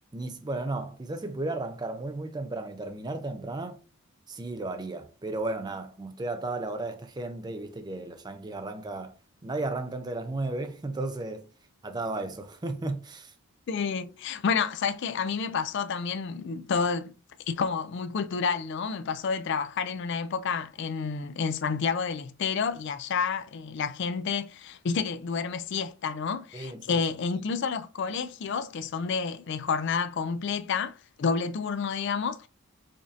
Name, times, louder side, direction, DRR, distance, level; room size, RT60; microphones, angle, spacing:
voice 1, 0.1-3.8 4.3-9.1 9.4-11.5 11.8-13.3 26.5-27.0, right 2 dB, 20° right, 0.4 m, -34 dB
voice 2, 13.7-17.1 17.5-32.5, left 5 dB, 50° left, 0.3 m, -29 dB
5.0 x 2.6 x 2.6 m
head